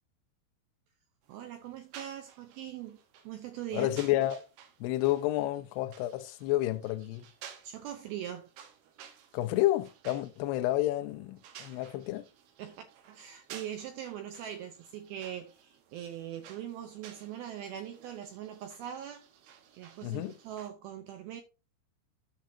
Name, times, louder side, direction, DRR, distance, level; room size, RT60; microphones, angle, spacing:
sound 1, 1.2-20.7, right 8 dB, 70° right, 2.9 m, -54 dB
voice 1, 1.3-3.0 3.2-3.9 7.6-8.5 11.7-11.8 12.6-19.3 19.7-21.4, right 10 dB, 85° right, 2.1 m, -41 dB
voice 2, 3.7-4.4 4.8-7.2 9.3-12.2 20.0-20.3, left 15 dB, 80° left, 2.5 m, -30 dB
13.0 x 5.9 x 2.7 m
omnidirectional pair, 5.3 m